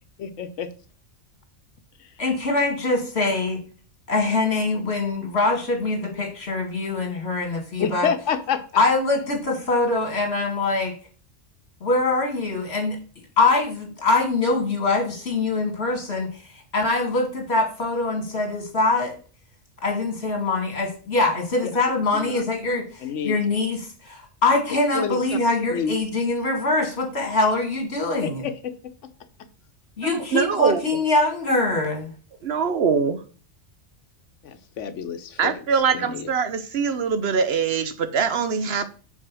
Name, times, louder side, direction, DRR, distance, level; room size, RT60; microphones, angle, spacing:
voice 1, 0.2-0.7 2.0-2.1 7.8-8.6 22.1-22.4 23.0-23.4 24.9-25.2 25.7-26.0 28.2-28.9 34.4-36.3, left 7 dB, 85° left, 9 dB, 1.1 m, -28 dB
voice 2, 2.2-3.6 4.1-8.1 8.8-10.9 11.8-13.0 13.4-19.2 19.8-28.4 30.0-32.1, left 3 dB, 60° left, 2 dB, 2.4 m, -23 dB
voice 3, 30.0-30.8 32.4-33.2 35.4-38.9, right 6 dB, 65° right, 11 dB, 0.9 m, -23 dB
6.1 x 4.7 x 6.2 m, 0.40 s
omnidirectional pair, 1.2 m